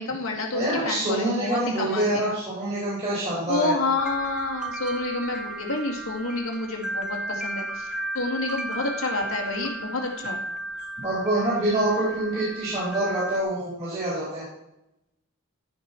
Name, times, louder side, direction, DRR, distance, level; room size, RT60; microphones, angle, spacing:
voice 1, 0.0-2.3 3.5-7.9 8.1-10.4, left 2 dB, 85° left, 1 dB, 2.2 m, -29 dB
voice 2, 0.5-3.7 11.0-14.4, right 1 dB, 30° right, -9 dB, 4.0 m, -26 dB
sound 1, 4.0-13.4, right 2 dB, 5° right, 0.8 m, -34 dB
14.5 x 5.4 x 4.4 m, 0.87 s
head